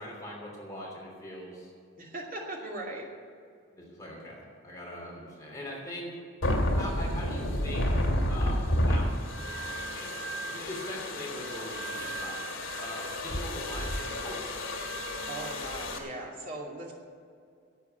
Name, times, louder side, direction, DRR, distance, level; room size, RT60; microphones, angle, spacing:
voice 1, 0.0-1.7 3.7-6.2 6.7-8.0 8.3-12.4 12.8-14.4, left 1 dB, 15° left, -3 dB, 3.1 m, -42 dB
voice 2, 2.0-3.1 15.3-17.0, right 1 dB, 40° right, -2 dB, 2.5 m, -39 dB
sound 1, 6.4-16.0, equal, 80° left, 2.1 m, -31 dB
11.5 x 8.2 x 9.4 m, 2.3 s
head